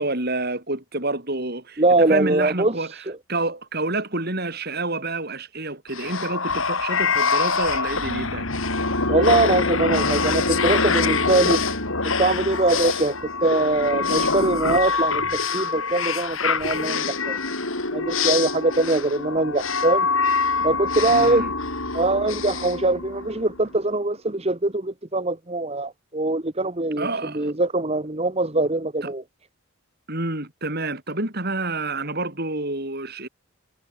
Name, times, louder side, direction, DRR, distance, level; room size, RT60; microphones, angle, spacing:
voice 1, 0.0-8.5 21.1-21.5 27.0-27.5 29.0-29.1 30.1-33.3, right 2 dB, 45° right, 5.1 m, -28 dB
voice 2, 1.8-2.7 9.1-11.6 12.2-13.1 13.4-15.2 15.5-17.4 17.9-20.1 20.6-21.4 21.9-27.1 27.3-29.2, right 2 dB, 30° right, 1.3 m, -22 dB
sound 1, 5.9-23.6, left 4 dB, 70° left, 6.9 m, -24 dB
head